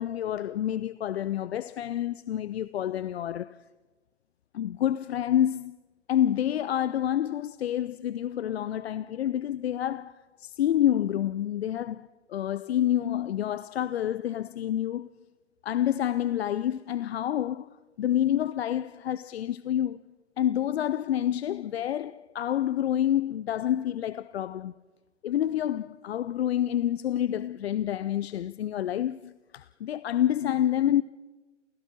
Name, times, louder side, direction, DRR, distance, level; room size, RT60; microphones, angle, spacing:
voice 1, 0.0-3.6 4.5-5.8 6.1-15.1 15.6-20.0 20.4-24.7 25.2-31.0, left 11 dB, 55° left, 0.5 m, -28 dB
28.5 x 16.5 x 6.0 m
hypercardioid pair, 135°, 38 cm